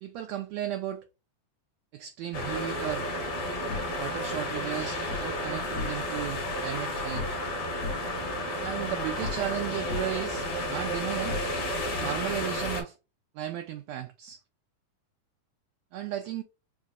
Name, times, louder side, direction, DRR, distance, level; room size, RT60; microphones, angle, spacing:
voice 1, 0.0-1.0 1.9-3.1 4.0-7.4 8.6-11.3 11.8-12.9 13.3-14.4 15.9-16.4, right 11 dB, 85° right, 1.5 m, -35 dB
sound 1, 2.3-12.8, left 1 dB, 55° left, 1.6 m, -32 dB
sound 2, 3.7-5.3 5.6-6.3 6.6-7.5 7.8-9.6 9.9-12.0, left 6 dB, 75° left, 1.8 m, -40 dB
5.1 x 2.6 x 2.4 m
omnidirectional pair, 3.6 m